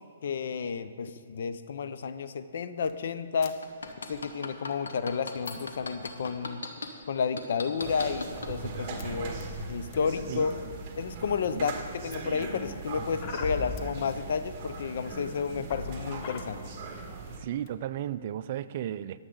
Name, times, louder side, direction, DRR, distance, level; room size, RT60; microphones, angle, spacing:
voice 1, 0.2-3.6 4.1-6.6 7.1-9.4 9.7-10.6 11.0-16.6, left 6 dB, 65° left, 11 dB, 0.7 m, -31 dB
sound 1, 2.8-2.9 3.4-3.5 3.7-4.2 4.7-4.8 5.3-6.5 6.9-7.0 7.4-7.5 7.8-8.4 9.0-9.1 9.4-10.5 11.0-11.5 12.1-14.0 14.7-14.8 15.2-16.4 17.0-17.1 17.3-17.7, left 3 dB, 35° left, 1.1 m, -42 dB
sound 2, 3.6-6.9 7.4-8.5 9.0-9.1, left 4 dB, 90° left, 1.3 m, -36 dB
sound 3, 7.8-17.4, right 4 dB, 30° right, 1.8 m, -40 dB
voice 2, 10.3-10.7 11.5-11.7 17.3-19.2, right 11 dB, 45° right, 14 dB, 0.4 m, -35 dB
21.5 x 8.0 x 3.9 m, 2.4 s
hypercardioid pair, 145°, 0 cm